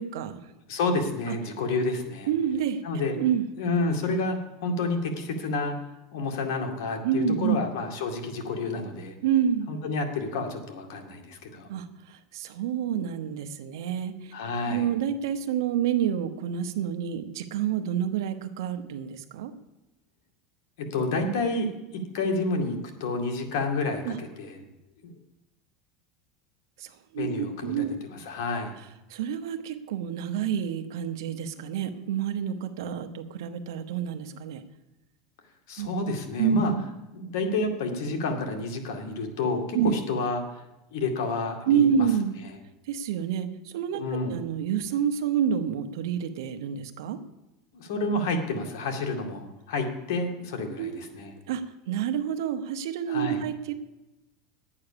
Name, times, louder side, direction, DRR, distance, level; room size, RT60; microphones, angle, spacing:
voice 1, 0.0-0.5 1.3-1.4 2.3-2.8 3.2-3.5 7.0-7.6 9.2-9.8 11.7-14.4 14.6-19.5 24.0-24.2 26.8-27.9 29.1-34.6 35.8-35.9 36.4-36.9 39.7-40.0 41.7-42.3 42.8-47.2 50.8-51.1 51.5-53.7, right 8 dB, 85° right, 7 dB, 1.0 m, -28 dB
voice 2, 0.7-2.3 2.8-3.2 3.6-5.8 6.1-9.2 9.7-11.7 14.3-14.8 20.8-24.6 25.0-25.1 27.2-28.8 35.7-36.7 37.1-40.6 40.9-42.1 44.0-44.4 47.7-51.3 53.1-53.4, left 3 dB, 75° left, 4 dB, 2.2 m, -29 dB
11.0 x 8.6 x 6.9 m, 0.97 s
supercardioid pair, 140°, 2 cm